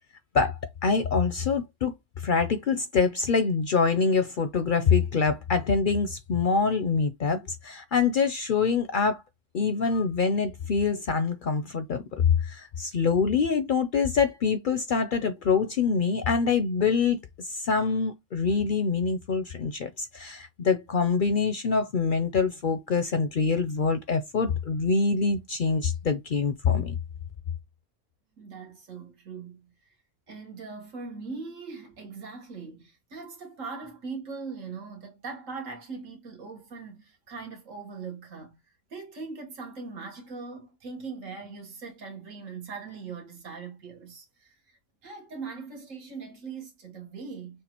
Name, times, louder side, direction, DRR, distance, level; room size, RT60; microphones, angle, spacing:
voice 1, 0.3-1.9 2.2-9.2 9.5-12.0 12.4-27.0, left 5 dB, 55° left, 0.6 m, -25 dB
voice 2, 28.4-29.9 30.3-38.6 38.9-47.6, right 4 dB, 85° right, 1.7 m, -40 dB
6.4 x 2.5 x 2.9 m
omnidirectional pair, 1.3 m